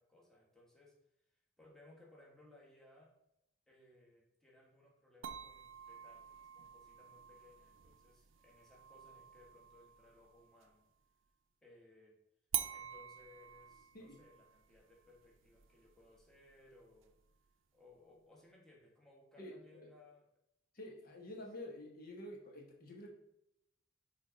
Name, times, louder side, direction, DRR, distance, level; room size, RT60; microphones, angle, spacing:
voice 1, 0.0-3.2 3.7-10.9 11.6-12.2 12.7-17.1 17.7-20.3, left 2 dB, ahead, -3 dB, 1.4 m, -64 dB
sound 1, 5.2-10.8 12.5-17.5, right 11 dB, 80° right, 0.5 m, -47 dB
voice 2, 19.4-19.9 20.7-23.1, left 1 dB, 50° left, 0 dB, 1.1 m, -49 dB
6.3 x 3.6 x 5.1 m, 0.82 s
head